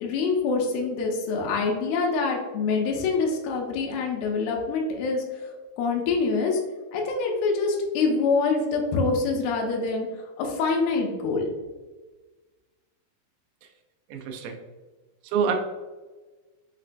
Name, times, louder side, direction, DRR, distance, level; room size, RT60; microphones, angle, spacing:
voice 1, 0.0-5.2 5.8-6.6 6.9-10.1 10.4-11.5, left 4 dB, 85° left, 0 dB, 2.4 m, -25 dB
voice 2, 14.1-14.6 15.3-15.6, right 6 dB, 80° right, 3 dB, 2.1 m, -26 dB
5.9 x 2.1 x 2.5 m, 1.2 s
omnidirectional pair, 4.1 m